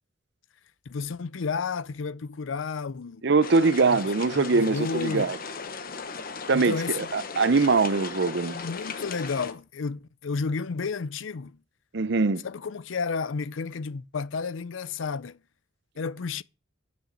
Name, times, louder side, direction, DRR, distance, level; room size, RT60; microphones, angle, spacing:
voice 1, 0.9-3.3 3.8-4.0 4.3-5.3 6.5-7.1 8.5-11.6 12.4-15.4 16.0-16.4, left 5 dB, 75° left, 0.5 m, -32 dB
voice 2, 3.2-5.4 6.5-8.6 11.9-12.4, right 4 dB, 60° right, 0.7 m, -22 dB
sound 1, 3.4-9.5, left 5 dB, 50° left, 1.1 m, -37 dB
10.0 x 6.3 x 7.7 m
head